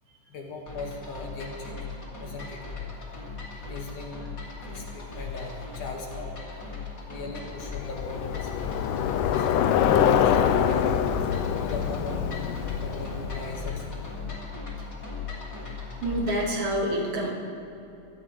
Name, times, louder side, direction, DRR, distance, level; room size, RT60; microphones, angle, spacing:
voice 1, 0.3-2.7 3.6-4.3 4.6-6.7 7.1-8.5 9.0-9.5 10.0-11.0 11.6-12.4 12.8-14.0 16.3-16.5, left 3 dB, 60° left, 0 dB, 3.0 m, -39 dB
sound 1, 0.7-16.5, left 4 dB, 25° left, 2.7 m, -38 dB
Bicycle, 7.6-14.1, left 8 dB, 80° left, 2.0 m, -25 dB
voice 2, 16.0-17.3, right 1 dB, 80° right, -4 dB, 4.5 m, -27 dB
25.5 x 15.0 x 3.2 m, 2.8 s
omnidirectional pair, 4.2 m